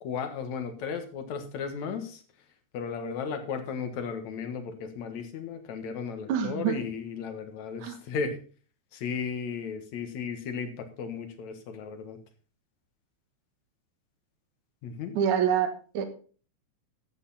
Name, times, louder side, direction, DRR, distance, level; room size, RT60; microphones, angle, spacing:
voice 1, 0.0-2.2 2.7-8.4 8.9-12.2 14.8-15.1, left 6 dB, 70° left, 8 dB, 2.7 m, -35 dB
voice 2, 6.3-6.8 7.8-8.0 15.2-15.7 15.9-16.1, right 9 dB, 75° right, 7 dB, 2.8 m, -25 dB
12.5 x 8.3 x 4.1 m, 0.38 s
omnidirectional pair, 3.5 m